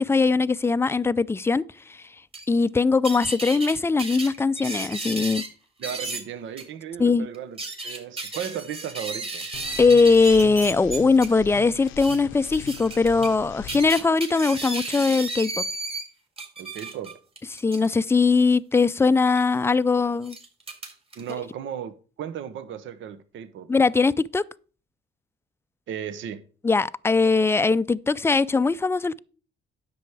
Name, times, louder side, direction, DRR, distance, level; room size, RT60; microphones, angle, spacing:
voice 1, 0.0-2.0 2.5-5.4 7.0-7.3 9.8-15.5 17.5-20.4 23.7-24.4 26.6-29.2, left 4 dB, 10° left, 0.4 m, -21 dB
sound 1, 2.3-2.4 3.0-3.7 4.0-5.5 5.8-6.2 6.6-6.7 7.3-11.3 11.9-12.2 12.5-13.3 13.7-16.0 16.4-17.9 19.2-19.4 20.2-21.3, right 2 dB, 30° right, 3.4 m, -33 dB
voice 2, 5.8-9.4 16.6-17.1 21.2-21.9 22.2-23.7 25.9-26.4, right 9 dB, 75° right, 1.0 m, -35 dB
sound 2, 9.5-13.9, left 12 dB, 80° left, 0.6 m, -41 dB
10.0 x 7.0 x 4.8 m
cardioid pair, 90°, 20 cm